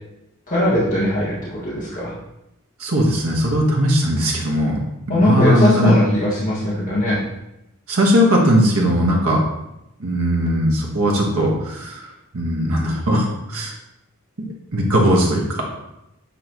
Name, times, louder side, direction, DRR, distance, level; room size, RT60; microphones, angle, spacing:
voice 1, 0.5-2.1 5.1-7.2, left 1 dB, 40° left, -9 dB, 1.4 m, -20 dB
voice 2, 2.8-4.8 5.1-5.9 7.9-9.4 10.0-12.0 12.3-13.7 14.4-15.7, equal, 80° right, -1 dB, 1.5 m, -18 dB
8.8 x 4.0 x 3.0 m, 0.88 s
head